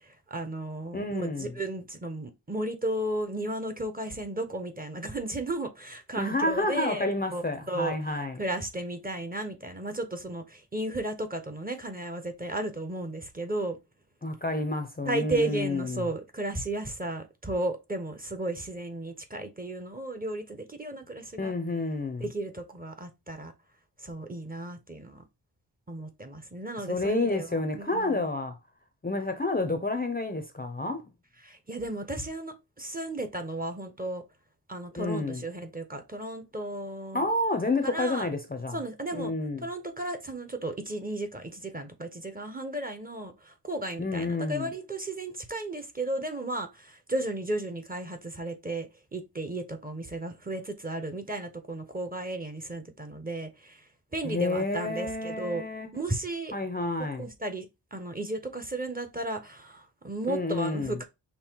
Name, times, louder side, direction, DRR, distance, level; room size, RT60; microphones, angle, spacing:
voice 1, 0.3-7.1 7.3-8.0 8.4-13.8 15.1-21.5 22.2-23.5 24.0-25.2 25.9-27.5 27.7-28.2 31.4-34.2 34.7-37.3 37.8-38.3 38.7-39.3 39.6-53.8 54.1-55.6 55.9-56.5 57.2-57.7 57.9-61.0, right 1 dB, 20° right, 0.8 m, -34 dB
voice 2, 0.9-1.6 6.2-8.4 14.2-16.0 21.4-22.3 26.8-28.6 29.0-31.0 35.0-35.4 37.1-38.8 39.1-39.7 44.0-44.7 54.2-55.9 56.5-57.3 60.3-61.0, left 2 dB, 20° left, 0.6 m, -29 dB
5.5 x 2.1 x 4.5 m
wide cardioid pair, 125°, 41 cm